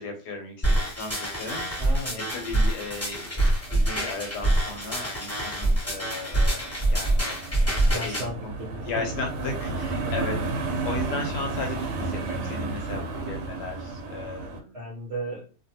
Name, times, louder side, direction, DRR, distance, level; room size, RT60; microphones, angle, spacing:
voice 1, 0.0-7.4 8.0-8.5 8.8-10.4 10.6-14.8, left 3 dB, 70° left, 2 dB, 1.3 m, -36 dB
sound 1, 0.6-8.2, right 1 dB, 10° left, 1.2 m, -25 dB
sound 2, 1.2-14.6, right 3 dB, 75° right, 1.1 m, -34 dB
voice 2, 1.8-2.2 7.8-9.0 10.0-10.1 14.7-15.5, right 1 dB, 55° right, -3 dB, 0.7 m, -35 dB
2.8 x 2.5 x 2.7 m, 0.35 s
omnidirectional pair, 1.9 m